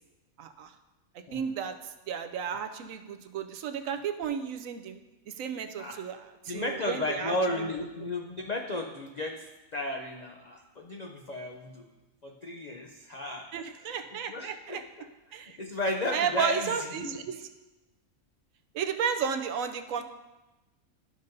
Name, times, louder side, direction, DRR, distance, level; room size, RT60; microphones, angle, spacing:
voice 1, 0.4-0.7 1.3-5.0 5.3-6.2 6.4-7.3 13.5-14.8 15.3-15.6 16.1-17.5 18.7-20.0, right 7 dB, 70° right, 8 dB, 0.9 m, -33 dB
voice 2, 6.5-11.9 12.2-13.5 14.3-17.2, left 1 dB, 60° left, 2 dB, 0.4 m, -34 dB
13.5 x 5.3 x 2.6 m, 1.1 s
omnidirectional pair, 1.5 m